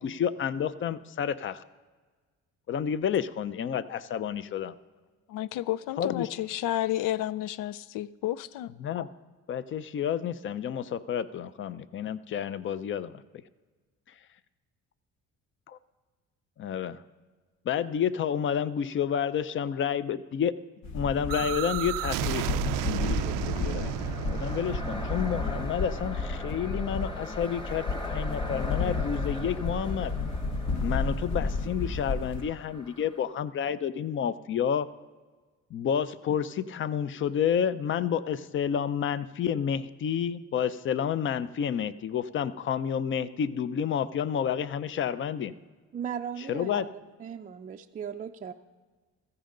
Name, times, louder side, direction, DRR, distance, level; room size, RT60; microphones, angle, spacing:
voice 1, 0.0-1.6 2.7-4.7 6.0-6.3 8.8-9.1 9.5-13.2 15.7-15.8 16.6-17.0 17.7-20.5 20.9-30.1 30.8-34.9 35.7-45.5 46.5-46.9, left 8 dB, 40° left, 15 dB, 0.5 m, -30 dB
voice 2, 5.3-8.7, left 13 dB, 90° left, 19 dB, 0.5 m, -31 dB
sound 1, 20.8-32.4, left 3 dB, 60° left, 1.2 m, -32 dB
sound 2, 21.3-27.0, right 16 dB, 85° right, 0.5 m, -34 dB
sound 3, 21.8-33.2, left 1 dB, 15° left, 1.2 m, -42 dB
voice 3, 45.9-46.9 47.2-48.5, right 8 dB, 25° right, 3 dB, 0.4 m, -37 dB
15.5 x 14.5 x 3.8 m, 1.4 s
cardioid pair, 125°, 31 cm